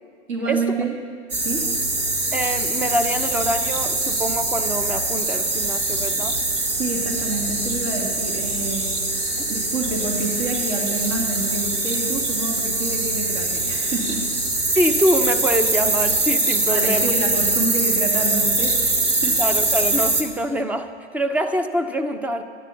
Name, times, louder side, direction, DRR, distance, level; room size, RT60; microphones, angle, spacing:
voice 1, 0.3-0.9 1.3-1.6 6.7-14.2 16.7-19.4, right 3 dB, 55° right, 0 dB, 2.6 m, -28 dB
sound 1, 1.3-20.2, right 2 dB, 85° right, 2.0 m, -23 dB
voice 2, 2.3-6.4 9.4-9.5 14.8-17.1 19.4-22.4, right 1 dB, 5° right, 9 dB, 0.4 m, -24 dB
12.5 x 10.0 x 7.1 m, 2.1 s
hypercardioid pair, 115°, 35 cm